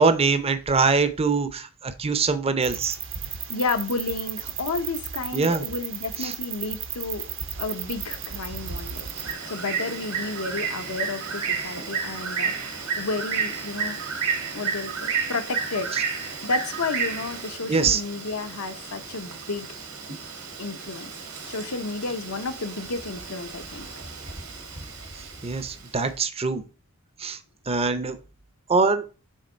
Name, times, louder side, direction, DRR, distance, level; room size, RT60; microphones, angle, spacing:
voice 1, 0.0-3.0 5.3-5.6 6.2-6.3 15.9-16.0 17.7-18.0 25.2-26.6 27.2-27.4 27.7-28.2 28.7-29.0, right 4 dB, 25° right, 0.6 m, -23 dB
sound 1, 2.6-9.3, right 9 dB, 60° right, 0.8 m, -35 dB
voice 2, 3.5-7.3 7.6-9.1 9.5-14.0 14.5-15.9 16.4-19.7 20.6-21.1 21.5-23.9, left 3 dB, 70° left, 0.8 m, -31 dB
Bird, 7.2-25.9, right 6 dB, 80° right, 1.7 m, -32 dB
6.4 x 3.8 x 4.4 m
head